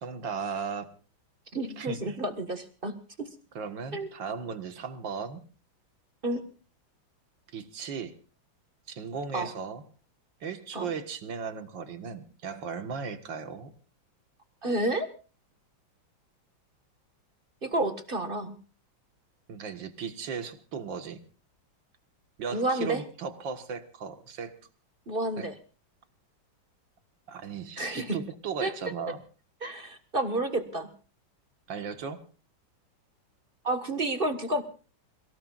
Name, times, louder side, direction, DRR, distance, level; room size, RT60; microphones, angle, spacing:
voice 1, 0.0-0.9 1.8-2.2 3.6-5.4 7.5-8.2 8.9-9.8 10.4-13.7 19.5-21.2 22.4-24.5 25.4-25.5 27.3-29.2 31.7-32.2, right 5 dB, 70° right, 9 dB, 2.2 m, -36 dB
voice 2, 1.5-3.3 3.9-4.1 6.2-6.5 9.3-9.5 10.7-10.9 14.6-15.1 17.6-18.5 22.5-23.0 25.1-25.5 27.8-28.2 28.6-28.7 29.6-30.9 33.6-34.6, right 1 dB, 30° right, 9 dB, 1.7 m, -30 dB
29.0 x 17.5 x 2.5 m, 0.37 s
omnidirectional pair, 2.2 m